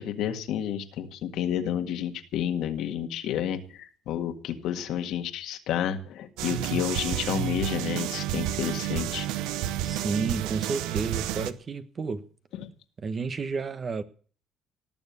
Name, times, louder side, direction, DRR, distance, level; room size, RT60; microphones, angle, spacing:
voice 1, 0.0-9.3, left 10 dB, 75° left, 1.8 m, -30 dB
sound 1, 6.4-11.5, right 12 dB, 85° right, 0.8 m, -30 dB
voice 2, 9.8-12.3 13.0-14.0, right 4 dB, 40° right, 1.4 m, -31 dB
18.5 x 7.1 x 8.4 m
supercardioid pair, 80°, 0 cm